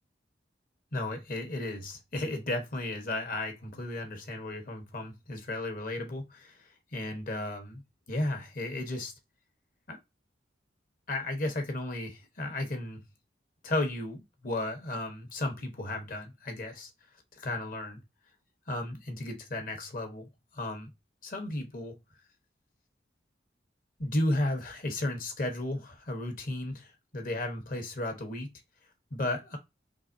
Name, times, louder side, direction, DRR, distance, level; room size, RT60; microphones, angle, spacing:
voice 1, 0.9-6.6 6.9-7.8 8.1-9.1 9.9-10.0 11.1-13.0 13.6-16.9 17.4-18.0 18.7-20.3 20.5-20.9 21.2-21.9 24.0-28.5 29.1-29.6, left 1 dB, 50° left, 1.0 m, -34 dB
3.9 x 3.0 x 2.6 m
head